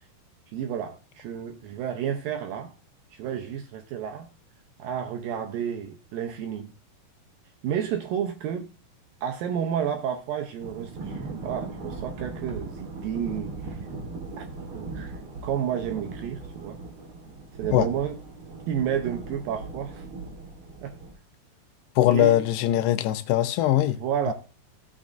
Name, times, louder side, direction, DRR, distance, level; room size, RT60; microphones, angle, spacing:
voice 1, 0.5-2.7 3.1-4.3 4.8-6.7 7.6-8.7 9.2-13.8 14.4-14.5 14.7-15.1 15.4-16.8 17.6-18.2 18.7-20.0 20.8-21.0 22.1-22.4 23.8-24.3, right 9 dB, 75° right, 2.2 m, -31 dB
Thunder / Rain, 10.6-21.1, right 3 dB, 50° right, 1.6 m, -38 dB
voice 2, 22.0-24.0 24.3-24.4, left 13 dB, 80° left, 2.7 m, -21 dB
16.0 x 6.2 x 2.5 m
omnidirectional pair, 4.8 m